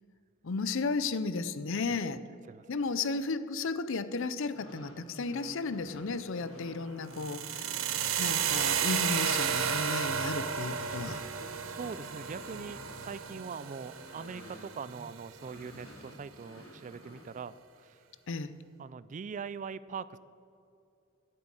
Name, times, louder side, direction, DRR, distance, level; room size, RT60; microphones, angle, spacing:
voice 1, 0.4-2.3 2.7-7.8 8.2-11.2 18.3-18.5, left 4 dB, 65° left, 14 dB, 0.6 m, -34 dB
sound 1, 4.4-15.1 15.4-17.3, left 1 dB, 85° left, 3.6 m, -51 dB
sound 2, 7.1-15.1, right 8 dB, 70° right, 0.9 m, -33 dB
voice 2, 11.6-17.5 17.8-18.0 18.8-20.2, right 6 dB, 35° right, 17 dB, 0.3 m, -42 dB
9.5 x 7.8 x 8.9 m, 2.6 s
head